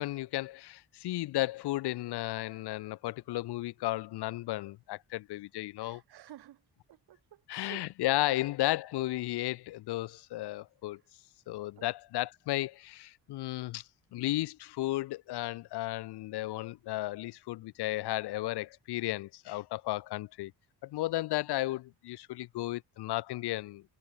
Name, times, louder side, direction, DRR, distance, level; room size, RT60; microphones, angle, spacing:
voice 1, 0.0-6.0 7.5-11.0 11.5-20.5 20.8-23.8, left 17 dB, 75° left, 0.7 m, -34 dB
voice 2, 5.8-6.6 6.9-7.9 8.2-8.4 11.8-11.9, right 13 dB, 70° right, 3.1 m, -52 dB
cardioid pair, 160°, 40 cm